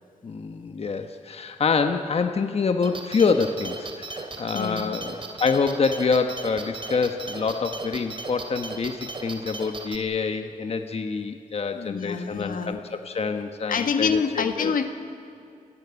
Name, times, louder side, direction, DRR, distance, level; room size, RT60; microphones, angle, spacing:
voice 1, 0.2-14.7, left 5 dB, 45° left, 6 dB, 1.2 m, -26 dB
sound 1, 2.8-10.0, right 3 dB, 35° right, 2.5 m, -37 dB
voice 2, 4.5-5.0 11.7-12.8 13.7-14.9, left 6 dB, 75° left, 7 dB, 1.8 m, -26 dB
30.0 x 14.0 x 9.7 m, 2.4 s
cardioid pair, 90°, 14 cm